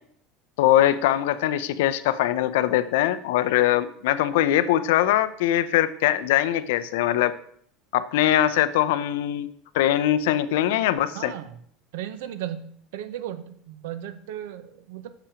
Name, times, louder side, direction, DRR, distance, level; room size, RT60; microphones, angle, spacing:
voice 1, 0.6-7.3 7.9-11.3, left 12 dB, 90° left, 14 dB, 0.5 m, -22 dB
voice 2, 11.1-11.6 11.9-15.1, right 11 dB, 90° right, 12 dB, 0.7 m, -36 dB
6.9 x 5.7 x 5.0 m, 0.63 s
cardioid pair, 180°, 0 cm